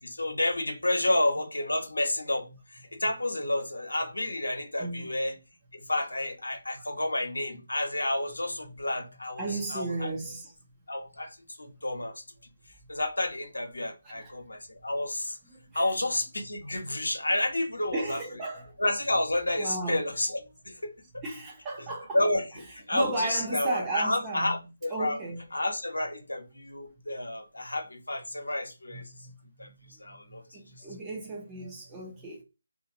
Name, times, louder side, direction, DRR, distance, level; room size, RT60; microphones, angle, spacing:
voice 1, 0.0-5.4 5.7-10.1 10.9-12.2 12.9-15.4 15.7-18.2 18.8-21.2 22.1-25.2 25.5-29.0 29.6-29.7 30.0-30.4, left 1 dB, 70° left, 0.9 m, -30 dB
voice 2, 4.8-5.1 9.4-10.5 14.0-14.3 15.5-15.9 17.9-18.8 19.6-20.0 21.2-22.2 22.9-24.5 24.9-25.4 28.9-30.2 30.5-32.4, right 2 dB, 15° right, 0.6 m, -35 dB
2.6 x 2.4 x 2.8 m
figure-of-eight pair, 150°, 0 cm